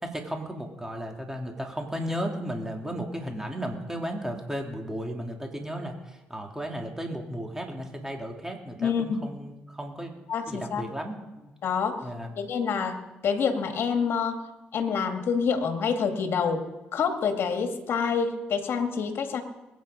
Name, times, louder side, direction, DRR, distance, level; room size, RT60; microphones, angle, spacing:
voice 1, 0.0-10.1 10.5-11.5 12.0-12.3, equal, 10° right, 2 dB, 3.2 m, -34 dB
voice 2, 8.8-9.2 10.3-10.8 11.6-12.0 12.4-14.5 14.7-16.6 16.9-19.4, left 6 dB, 60° left, 5 dB, 2.1 m, -27 dB
21.5 x 9.5 x 5.2 m, 1.1 s
hypercardioid pair, 50°, 5 cm